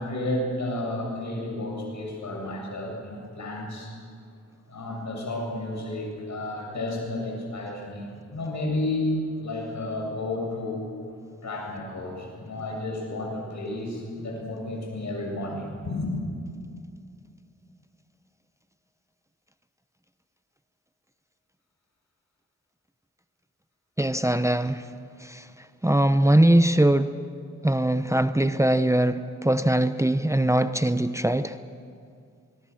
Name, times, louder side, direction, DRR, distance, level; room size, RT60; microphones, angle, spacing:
voice 1, 0.0-3.9 4.7-10.8 11.4-16.1, left 1 dB, 70° left, 0 dB, 7.8 m, -31 dB
voice 2, 24.0-24.9 25.2-25.5 25.8-27.1 27.6-31.6, right 1 dB, 10° right, 10 dB, 0.9 m, -21 dB
25.0 x 22.0 x 6.5 m, 2.3 s
cardioid pair, 50°, 30 cm